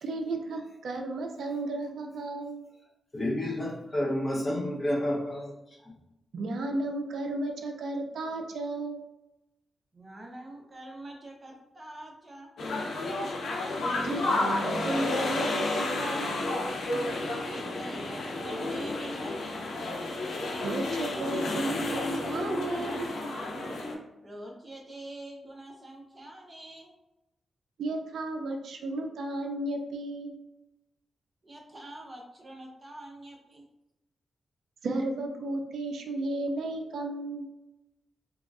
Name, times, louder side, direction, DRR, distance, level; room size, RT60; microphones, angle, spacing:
voice 1, 0.0-2.6 6.3-9.0 14.0-16.3 20.6-23.1 27.8-30.4 34.8-37.5, right 2 dB, 75° right, 4 dB, 0.3 m, -33 dB
voice 2, 3.1-5.9, left 1 dB, 30° left, -4 dB, 0.8 m, -30 dB
voice 3, 9.9-12.5 17.4-19.6 24.2-26.9 31.4-33.6, right 1 dB, 25° right, 0 dB, 0.6 m, -45 dB
sound 1, 12.6-23.9, left 2 dB, 70° left, 0.5 m, -31 dB
3.5 x 2.3 x 2.3 m, 0.94 s
wide cardioid pair, 135°, 0 cm